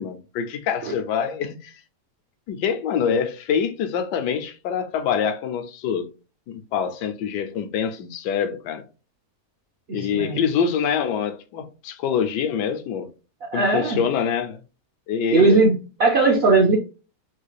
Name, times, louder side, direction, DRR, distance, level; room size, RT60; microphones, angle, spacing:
voice 1, 0.0-1.8 2.5-6.1 6.5-8.8 9.9-13.1 13.5-14.6 15.1-15.7, left 7 dB, 80° left, 1.2 m, -25 dB
voice 2, 9.9-10.4 13.5-14.0 15.3-16.8, right 3 dB, 60° right, 0.6 m, -19 dB
3.6 x 2.4 x 3.1 m
omnidirectional pair, 1.8 m